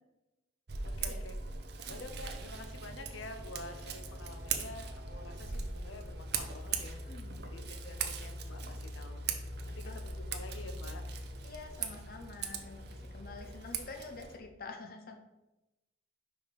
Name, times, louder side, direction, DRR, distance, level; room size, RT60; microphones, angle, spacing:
Scissors, 0.7-14.4, right 6 dB, 55° right, 0.7 m, -41 dB
voice 1, 0.8-1.4 1.9-7.0 7.4-9.3 9.7-11.0 11.8-12.0, left 2 dB, 80° left, 6 dB, 0.8 m, -48 dB
sound 1, 3.9-13.9, left 1 dB, 30° left, 1.4 m, -45 dB
voice 2, 7.1-7.4 9.8-10.0 11.4-15.2, left 3 dB, 50° left, 4 dB, 0.7 m, -47 dB
5.1 x 5.0 x 5.1 m, 0.98 s
head